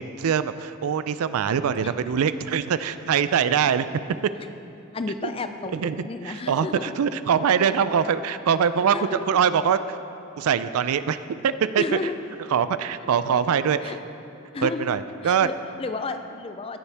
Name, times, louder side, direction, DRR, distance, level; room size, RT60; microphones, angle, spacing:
voice 1, 0.0-3.9 5.7-10.0 10.4-12.1 12.5-13.9 14.6-15.5, right 7 dB, 80° right, 13 dB, 0.4 m, -23 dB
voice 2, 4.9-7.0 8.9-9.4 11.8-12.3 13.8-14.0 14.5-16.8, left 3 dB, 25° left, 9 dB, 0.4 m, -32 dB
16.0 x 7.1 x 3.4 m, 2.8 s
head